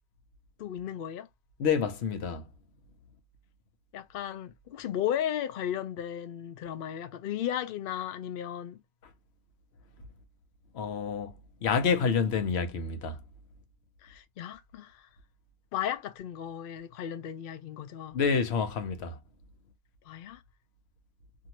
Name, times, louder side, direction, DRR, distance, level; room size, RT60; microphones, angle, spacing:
voice 1, 0.6-1.3 3.9-8.8 14.0-15.1 15.7-18.2 20.1-20.4, left 10 dB, 65° left, 0.7 m, -35 dB
voice 2, 1.6-2.4 10.7-11.3 11.6-13.2 18.1-19.2, left 6 dB, 85° left, 1.0 m, -28 dB
2.7 x 2.6 x 2.8 m
omnidirectional pair, 1.1 m